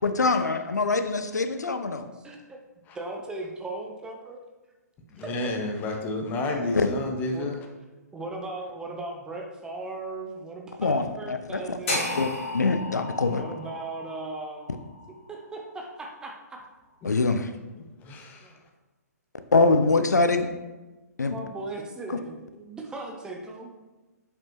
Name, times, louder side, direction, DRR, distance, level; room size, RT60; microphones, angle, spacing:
voice 1, 0.0-2.1 6.7-6.9 10.8-11.8 12.2-12.3 12.5-13.4 17.0-17.5 19.5-20.5 21.2-21.4, left 3 dB, 75° left, 8 dB, 0.5 m, -23 dB
voice 2, 2.1-2.6 2.9-4.4 5.2-5.3 7.3-7.5 8.1-12.3 13.3-14.7 15.3-16.6 18.4-18.5 21.2-23.7, right 2 dB, 10° right, 1 dB, 0.6 m, -38 dB
voice 3, 5.1-7.6 18.0-18.5, left 2 dB, 20° left, 2 dB, 0.8 m, -30 dB
sound 1, 11.9-16.0, left 2 dB, 50° left, 2.2 m, -34 dB
7.2 x 5.2 x 3.1 m, 1.1 s
figure-of-eight pair, 125°, 9 cm